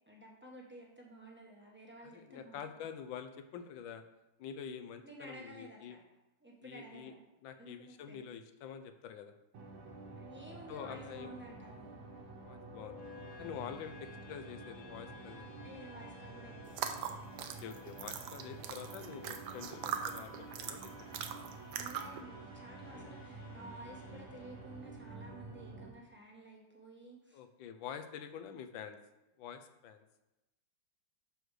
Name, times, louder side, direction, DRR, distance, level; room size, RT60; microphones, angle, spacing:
voice 1, 0.1-2.9 5.0-6.0 6.4-7.3 7.6-8.3 10.1-12.0 13.4-13.6 15.6-16.7 21.7-27.4, right 1 dB, 10° right, -2 dB, 0.8 m, -52 dB
voice 2, 2.1-4.0 4.4-6.0 6.6-7.1 7.4-9.4 10.7-11.4 12.4-13.0 13.4-15.5 17.4-21.1 21.3-21.4 22.9-23.1 27.3-29.0 29.4-30.0, left 7 dB, 85° left, 8 dB, 1.4 m, -47 dB
sound 1, 9.5-25.9, right 3 dB, 85° right, 1.8 m, -50 dB
sound 2, 12.3-25.2, left 5 dB, 45° left, 1.2 m, -56 dB
sound 3, 16.7-22.2, right 8 dB, 70° right, 1.1 m, -41 dB
6.3 x 5.0 x 4.7 m, 0.99 s
omnidirectional pair, 2.1 m